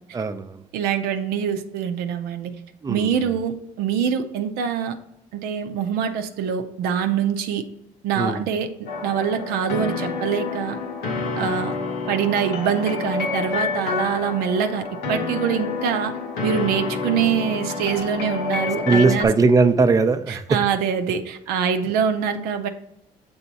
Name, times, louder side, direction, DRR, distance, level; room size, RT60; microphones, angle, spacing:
voice 1, 0.1-0.6 2.8-3.4 8.2-8.4 11.3-11.5 18.9-20.4, right 4 dB, 20° right, 9 dB, 0.5 m, -20 dB
voice 2, 0.7-2.5 2.9-5.0 5.3-7.6 8.0-8.7 9.0-10.8 11.4-11.7 12.1-16.1 16.4-19.3 20.3-22.7, right 7 dB, 85° right, 7 dB, 0.6 m, -24 dB
sound 1, 8.9-19.2, left 4 dB, 75° left, 1.1 m, -28 dB
6.9 x 3.5 x 4.1 m, 0.81 s
cardioid pair, 85°, 16 cm